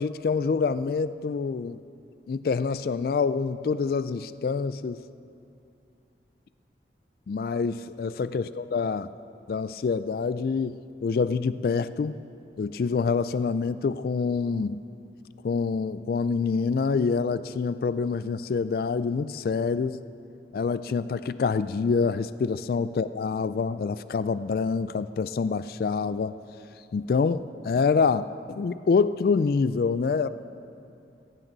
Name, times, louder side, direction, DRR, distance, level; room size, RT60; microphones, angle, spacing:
voice 1, 0.0-1.8 2.3-5.0 7.3-9.1 9.5-12.2 12.6-14.8 15.4-20.0 20.5-26.3 26.9-30.3, left 5 dB, 55° left, 14 dB, 0.3 m, -26 dB
17.0 x 15.0 x 4.0 m, 2.6 s
head